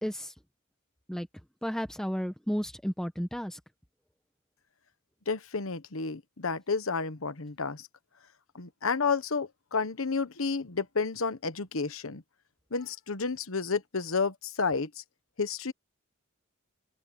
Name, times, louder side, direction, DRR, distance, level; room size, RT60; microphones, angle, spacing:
voice 1, 0.0-0.3 1.1-1.3 1.6-3.6, equal, 5° left, 1.2 m, -32 dB
voice 2, 5.3-7.9 8.5-12.2 12.7-14.9 15.4-15.7, left 4 dB, 80° left, 1.2 m, -31 dB
open air
head